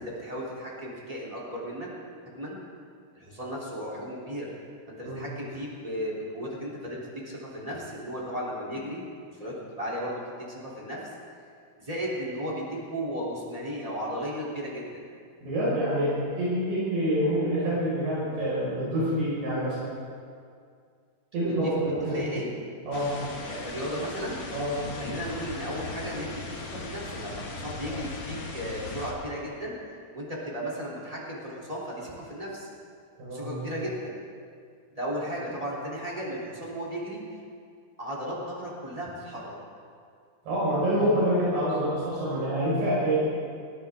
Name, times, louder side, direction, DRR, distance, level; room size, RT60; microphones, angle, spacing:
voice 1, 0.0-1.9 2.2-2.6 3.1-4.5 4.9-7.0 7.2-11.0 11.8-15.0 21.4-21.7 22.1-22.5 23.4-24.4 24.9-29.8 30.1-32.7 33.3-34.1 34.9-37.2 38.0-39.5, equal, 10° right, -6 dB, 2.8 m, -35 dB
voice 2, 15.4-19.8 21.3-22.2 22.9-23.1 24.5-24.7 27.9-28.0 33.2-33.7 40.5-43.2, equal, 75° right, -8 dB, 7.5 m, -27 dB
sound 1, 22.9-29.1, left 3 dB, 50° left, 1.7 m, -38 dB
21.0 x 16.0 x 3.7 m, 2.2 s
omnidirectional pair, 4.6 m